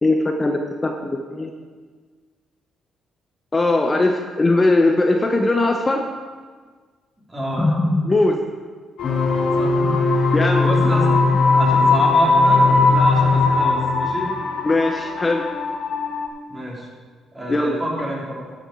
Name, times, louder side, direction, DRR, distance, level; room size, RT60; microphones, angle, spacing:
voice 1, 0.0-1.5 3.5-6.0 7.6-8.4 9.8-10.0 10.3-10.7 14.6-15.5 17.5-17.8, left 2 dB, 25° left, 3 dB, 0.8 m, -19 dB
voice 2, 7.3-7.7 9.5-9.8 10.1-11.1 11.5-14.3 16.5-16.9 17.3-18.5, equal, 20° right, -4 dB, 3.3 m, -28 dB
sound 1, 9.0-16.3, left 3 dB, 70° left, 1.2 m, -20 dB
sound 2, 9.0-14.1, left 4 dB, 50° left, 1.9 m, -21 dB
12.5 x 7.5 x 4.5 m, 1.5 s
cardioid pair, 90°, 0 cm